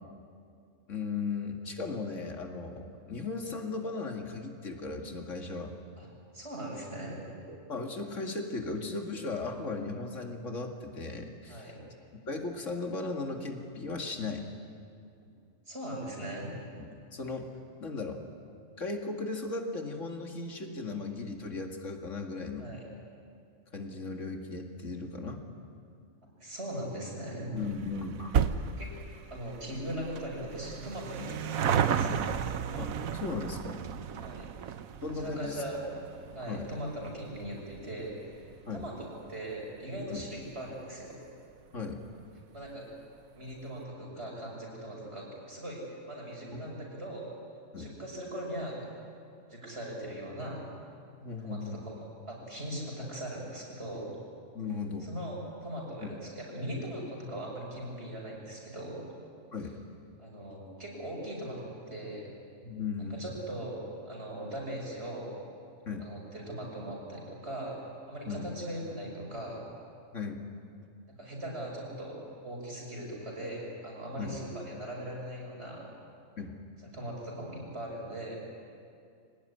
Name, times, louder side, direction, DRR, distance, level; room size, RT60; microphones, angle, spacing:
voice 1, 0.9-5.7 7.5-11.7 12.3-14.4 16.8-17.5 17.8-18.2 18.8-22.7 23.7-25.4 27.5-28.3 31.2-31.3 32.8-33.8 35.0-35.6 36.4-36.7 38.7-38.9 40.1-40.2 41.7-42.0 47.7-47.9 51.2-51.8 54.5-55.1 56.0-56.1 59.5-59.7 62.6-63.3 65.9-66.0 68.3-68.4 70.1-70.4 74.2-74.4 76.4-76.5, left 3 dB, 65° left, 3 dB, 2.5 m, -37 dB
voice 2, 6.3-7.2 11.5-11.8 15.7-16.5 22.6-22.8 26.4-27.6 28.8-28.9 29.3-32.2 34.2-34.5 35.1-35.8 36.3-38.9 39.3-41.2 42.5-42.9 43.3-47.2 47.8-48.9 49.5-50.6 51.4-51.6 51.9-52.0 52.3-54.1 55.0-59.0 60.2-62.3 63.1-65.4 66.0-67.8 68.1-69.7 71.1-75.9 76.9-78.4, right 1 dB, 50° right, -2 dB, 6.5 m, -40 dB
sound 1, 27.6-40.3 40.6-40.7 41.6-41.7 41.9-42.0 42.3-42.4, right 8 dB, 85° right, 1.3 m, -34 dB
24.5 x 18.5 x 9.9 m, 2.4 s
omnidirectional pair, 1.4 m